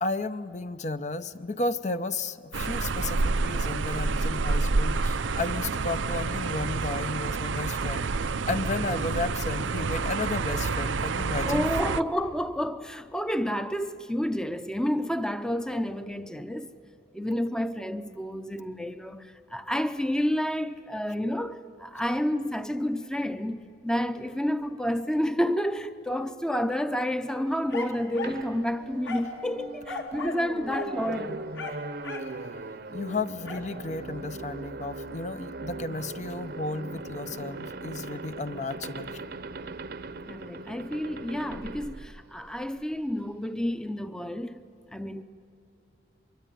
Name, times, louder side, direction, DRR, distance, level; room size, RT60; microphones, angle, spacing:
voice 1, 0.0-8.1 8.5-11.6 32.9-39.2, left 3 dB, 40° left, 0.6 m, -33 dB
sound 1, 2.5-12.0, right 4 dB, 85° right, 0.6 m, -28 dB
voice 2, 11.5-16.7 17.1-31.5 40.3-44.6 44.9-45.2, equal, 5° left, 0.7 m, -30 dB
sound 2, 27.7-28.4 29.0-29.4 29.9-30.4 30.7-30.9 31.5-32.3 33.5-33.7, left 4 dB, 70° left, 3.6 m, -37 dB
sound 3, 28.2-42.8, right 2 dB, 55° right, 0.9 m, -39 dB
25.0 x 23.0 x 9.2 m
head